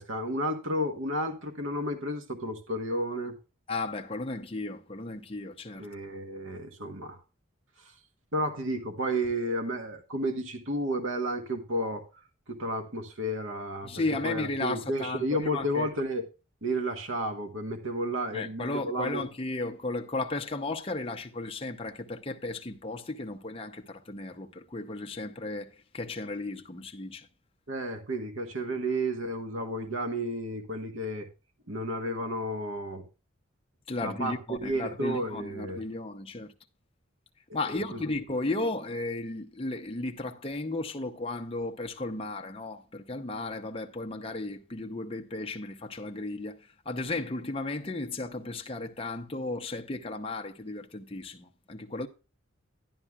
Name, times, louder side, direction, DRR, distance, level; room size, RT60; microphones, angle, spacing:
voice 1, 0.0-3.3 5.8-7.2 7.8-7.9 8.3-12.1 12.5-16.2 16.6-19.2 27.7-31.3 31.7-33.0 34.0-35.8 37.7-38.0, right 1 dB, 75° right, 1.2 m, -32 dB
voice 2, 3.7-5.9 13.8-15.9 18.3-27.3 33.9-36.5 37.5-46.6 46.9-52.1, left 2 dB, 30° left, 0.8 m, -34 dB
11.5 x 11.0 x 2.3 m
head